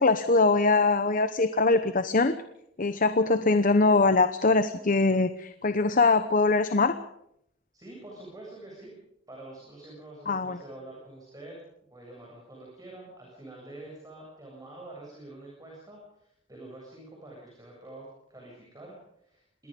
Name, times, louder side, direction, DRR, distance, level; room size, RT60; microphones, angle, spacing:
voice 1, 0.0-2.3 2.8-6.9 10.3-10.6, left 3 dB, 45° left, 10 dB, 1.0 m, -22 dB
voice 2, 7.7-8.9 9.3-11.6 11.9-19.7, right 2 dB, 20° right, -3 dB, 7.8 m, -46 dB
26.5 x 21.0 x 5.4 m, 0.76 s
head